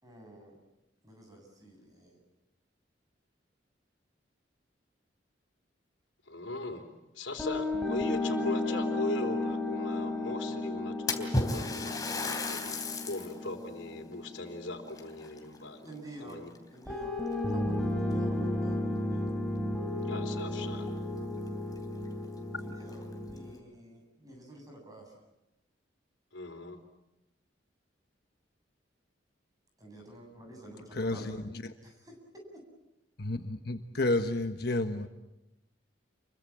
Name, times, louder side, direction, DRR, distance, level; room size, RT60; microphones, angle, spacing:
voice 1, 0.0-0.6 1.0-2.2 15.8-16.4 16.7-17.2 17.5-19.4 22.6-25.1 29.8-31.4 31.8-32.1, right 1 dB, 20° right, 2 dB, 8.0 m, -50 dB
voice 2, 6.3-12.8 13.1-15.9 16.2-16.5 20.0-20.9 26.3-26.8, left 2 dB, 85° left, 5 dB, 3.9 m, -39 dB
sound 1, 7.4-15.5 16.9-23.5, left 1 dB, 5° left, 3.9 m, -34 dB
Splash splatter, 11.1-13.4 13.9-14.0 14.9-15.9 16.3-16.7 17.5-17.6 18.1-18.2 20.4-20.5 20.8-20.9 21.5-21.6 22.0-22.1 22.8-23.4, left 2 dB, 20° left, 3.3 m, -34 dB
voice 3, 30.9-31.7 33.2-35.1, left 2 dB, 60° left, 6 dB, 1.3 m, -31 dB
29.5 x 23.5 x 7.5 m, 0.93 s
head